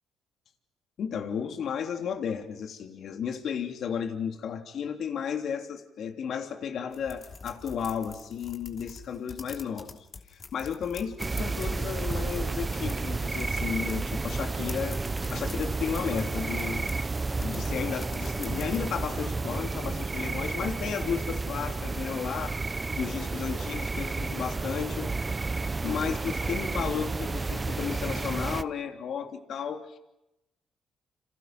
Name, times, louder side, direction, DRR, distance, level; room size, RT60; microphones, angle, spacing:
voice 1, 1.0-10.0 10.5-15.0 15.3-16.9 17.4-22.6 22.9-25.1 25.5-30.0, left 7 dB, 65° left, 5 dB, 3.3 m, -33 dB
sound 1, 6.9-18.8, left 4 dB, 45° left, 3.0 m, -46 dB
sound 2, 11.2-28.6, right 3 dB, 25° right, 0.9 m, -31 dB
29.5 x 27.5 x 6.1 m, 0.90 s
cardioid pair, 90°, 0 cm